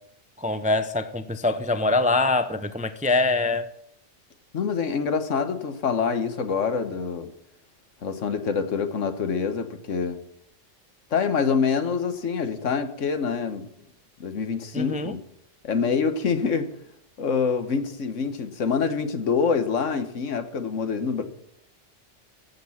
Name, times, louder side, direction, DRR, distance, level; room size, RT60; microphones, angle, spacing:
voice 1, 0.4-3.7 14.7-15.1, left 2 dB, 10° right, 11 dB, 0.4 m, -24 dB
voice 2, 4.5-7.3 8.0-10.2 11.1-13.7 14.2-15.2 15.6-16.7 17.2-21.2, left 5 dB, 80° left, 9 dB, 1.5 m, -26 dB
14.5 x 6.7 x 7.2 m, 0.75 s
omnidirectional pair, 1.3 m